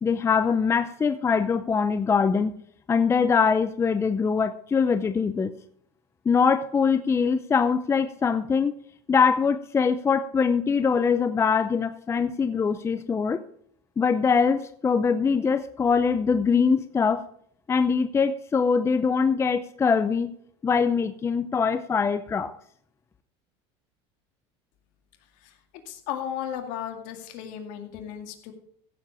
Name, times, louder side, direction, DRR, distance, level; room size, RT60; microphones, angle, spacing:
voice 1, 0.0-2.5 2.9-5.5 6.3-8.7 9.1-13.4 14.0-17.3 17.7-20.3 20.6-22.5, left 5 dB, 20° left, 11 dB, 0.6 m, -23 dB
voice 2, 25.9-28.5, left 9 dB, 65° left, 5 dB, 2.3 m, -34 dB
15.5 x 7.4 x 4.8 m, 0.66 s
supercardioid pair, 115°, 14 cm